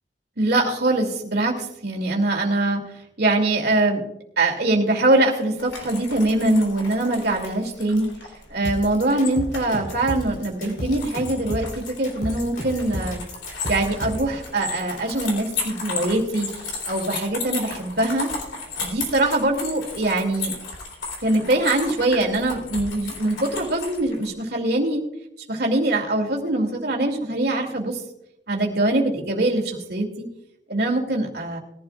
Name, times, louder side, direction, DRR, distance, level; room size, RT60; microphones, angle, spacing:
voice 1, 0.4-2.8 3.2-4.0 4.4-8.1 8.5-13.2 13.7-16.5 16.9-18.3 18.8-20.5 21.2-25.0 25.5-28.0 28.5-30.3 30.7-31.6, right 2 dB, 55° right, 1 dB, 2.7 m, -23 dB
sound 1, 5.6-24.3, left 4 dB, 85° left, 4.1 m, -35 dB
sound 2, 8.6-14.3, equal, 45° left, 4.1 m, -32 dB
21.0 x 12.0 x 2.5 m, 0.80 s
head